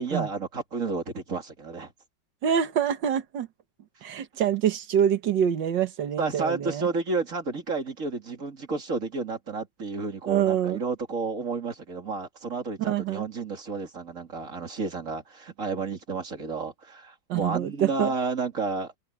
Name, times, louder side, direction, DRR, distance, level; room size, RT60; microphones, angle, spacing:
voice 1, 0.0-1.9 6.2-18.9, right 4 dB, 40° right, 3.0 m, -31 dB
voice 2, 2.4-3.5 4.0-6.9 10.3-10.8 12.8-13.2 17.3-18.1, right 9 dB, 65° right, 1.9 m, -25 dB
omnidirectional pair, 2.2 m